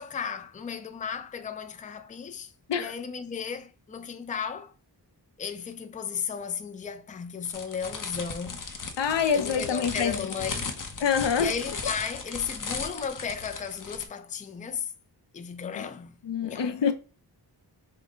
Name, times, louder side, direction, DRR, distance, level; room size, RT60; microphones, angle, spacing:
voice 1, 0.0-4.7 5.4-8.7 9.3-10.8 11.4-14.9 15.3-16.2 16.4-16.7, left 6 dB, 20° left, 0.4 m, -35 dB
sound 1, 7.5-14.1, left 4 dB, 50° left, 0.7 m, -36 dB
voice 2, 9.0-10.1 11.0-11.5 15.8-15.9 16.2-16.9, left 7 dB, 85° left, 0.7 m, -26 dB
5.2 x 2.2 x 3.6 m
wide cardioid pair, 105°, 41 cm